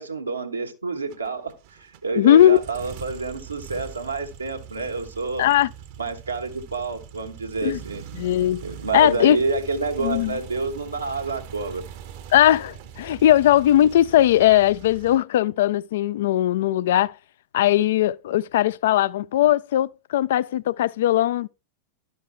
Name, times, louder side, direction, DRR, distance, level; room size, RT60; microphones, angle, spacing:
voice 1, 0.0-5.5 6.0-8.0 8.6-11.8, right 3 dB, 80° right, 1.2 m, -28 dB
sound 1, 1.1-15.2, right 8 dB, 50° right, 0.8 m, -42 dB
voice 2, 2.2-2.6 5.4-5.7 7.6-7.8 8.2-8.6 8.9-9.4 10.0-10.4 12.3-17.1 17.5-21.5, left 12 dB, 55° left, 0.3 m, -19 dB
12.0 x 5.2 x 3.2 m
figure-of-eight pair, 90°, 0 cm